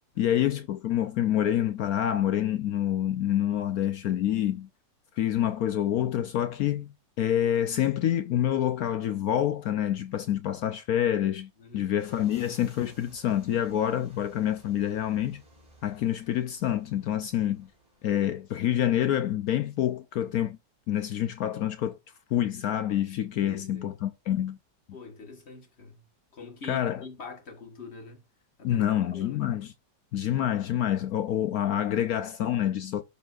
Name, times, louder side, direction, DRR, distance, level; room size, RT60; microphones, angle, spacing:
voice 1, 0.2-4.7 5.2-15.4 15.8-17.7 18.0-20.6 20.9-22.0 22.3-24.6 26.7-27.0 28.6-29.7 30.1-33.0, left 11 dB, 70° left, 0.9 m, -27 dB
voice 2, 11.6-11.9 12.9-13.0 23.4-24.0 24.9-26.0 26.3-28.2 28.6-29.5, left 4 dB, 35° left, 1.7 m, -44 dB
sound 1, 12.0-18.4, right 2 dB, 20° right, 2.7 m, -57 dB
12.0 x 4.2 x 2.5 m
omnidirectional pair, 2.0 m